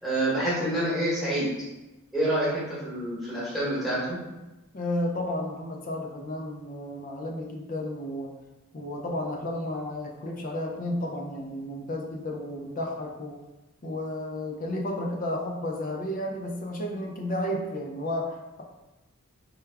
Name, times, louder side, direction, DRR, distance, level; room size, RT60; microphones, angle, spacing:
voice 1, 0.0-1.4 2.1-4.2, right 1 dB, ahead, -9 dB, 1.1 m, -27 dB
voice 2, 4.7-8.3 8.7-13.4 13.8-18.6, left 1 dB, 40° left, 0 dB, 0.4 m, -32 dB
3.3 x 2.2 x 3.3 m, 1.0 s
head